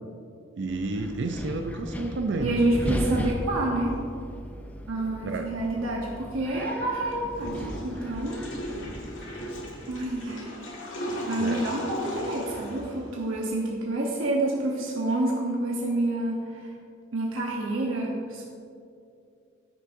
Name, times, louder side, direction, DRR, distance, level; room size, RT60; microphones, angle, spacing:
voice 1, 0.6-2.6 5.2-5.5 11.4-11.7, right 2 dB, 60° right, 5 dB, 0.4 m, -31 dB
Wind, 0.7-10.2, equal, 10° left, 0.4 m, -36 dB
voice 2, 2.4-4.0 4.9-8.4 9.9-10.5 11.3-16.4 17.1-18.4, right 2 dB, 80° right, -3 dB, 0.9 m, -28 dB
Water / Toilet flush, 7.3-13.5, equal, 65° left, 1.7 m, -37 dB
14.0 x 6.3 x 2.6 m, 2.5 s
head